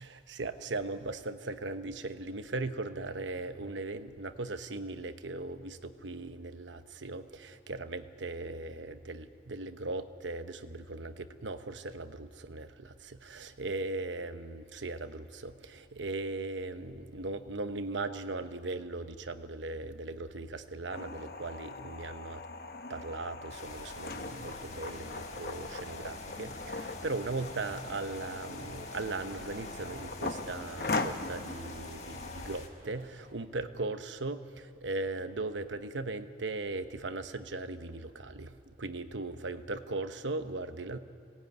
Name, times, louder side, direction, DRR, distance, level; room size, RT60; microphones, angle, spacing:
voice 1, 0.0-22.4 22.9-41.0, right 2 dB, 90° right, 10 dB, 1.0 m, -38 dB
sound 1, 20.9-32.6, left 3 dB, 55° left, 1.0 m, -40 dB
sound 2, 23.5-32.7, left 3 dB, 40° left, 1.6 m, -49 dB
sound 3, 23.8-33.3, right 1 dB, 50° right, 2.6 m, -54 dB
20.5 x 17.5 x 9.4 m, 2.3 s
head